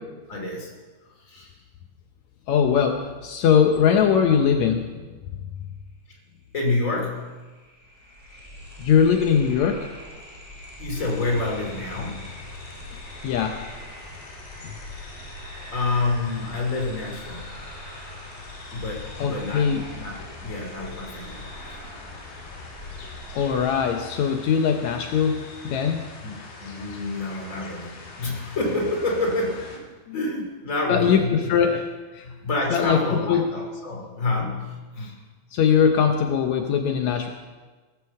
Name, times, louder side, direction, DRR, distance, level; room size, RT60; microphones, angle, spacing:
voice 1, 0.3-0.7 1.2-1.6 6.5-7.4 10.8-12.4 14.1-14.2 14.9-15.0 15.7-17.6 18.7-21.8 26.2-29.9 30.1-31.7 32.2-35.2, left 2 dB, 25° left, 1 dB, 2.4 m, -28 dB
voice 2, 2.5-5.1 5.4-5.5 8.8-9.9 13.2-13.6 19.2-19.8 23.3-26.1 30.1-30.2 30.9-31.8 32.1-32.3 32.7-33.5 35.0-35.1 35.5-37.3, left 7 dB, 80° left, 4 dB, 1.6 m, -21 dB
sound 1, 7.1-23.8, left 1 dB, 5° left, 3.0 m, -42 dB
sound 2, 10.9-29.8, left 3 dB, 65° left, 3.8 m, -43 dB
18.0 x 8.2 x 7.2 m, 1.3 s
omnidirectional pair, 4.4 m